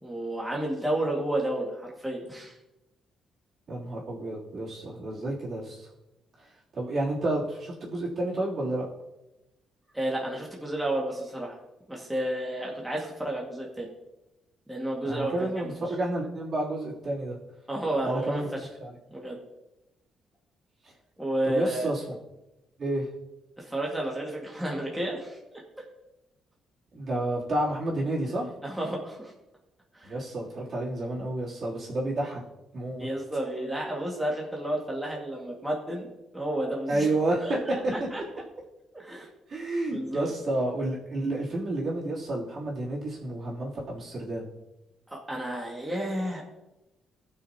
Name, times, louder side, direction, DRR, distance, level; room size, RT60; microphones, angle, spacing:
voice 1, 0.0-2.6 9.9-11.6 11.9-13.9 14.7-15.5 17.7-18.7 19.1-19.4 21.2-21.9 23.6-25.4 28.6-29.3 29.9-30.2 33.0-36.1 36.3-37.1 37.4-38.2 38.9-39.3 39.9-40.3 45.1-46.4, right 1 dB, 5° right, -3 dB, 2.0 m, -31 dB
voice 2, 3.7-5.9 6.4-6.5 6.7-8.9 15.1-17.4 18.0-18.5 18.8-18.9 20.8-20.9 21.4-22.0 22.8-23.1 26.9-28.5 30.0-32.4 32.7-33.1 36.9-37.6 39.5-44.5, right 1 dB, 50° right, -6 dB, 3.2 m, -30 dB
17.0 x 6.3 x 2.9 m, 0.98 s
cardioid pair, 90°, 0 cm